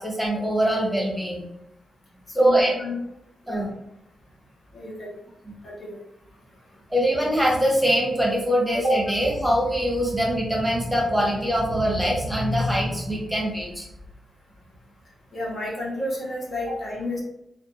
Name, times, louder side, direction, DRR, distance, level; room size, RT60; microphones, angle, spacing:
voice 1, 0.0-1.4 2.4-2.7 3.5-3.7 6.9-13.9, equal, 10° right, -3 dB, 1.0 m, -23 dB
voice 2, 2.3-3.0 3.5-3.7 4.7-5.1 5.6-6.0 15.3-17.2, left 1 dB, 55° left, -4 dB, 0.9 m, -31 dB
2.5 x 2.3 x 2.7 m, 0.85 s
cardioid pair, 55°, 0 cm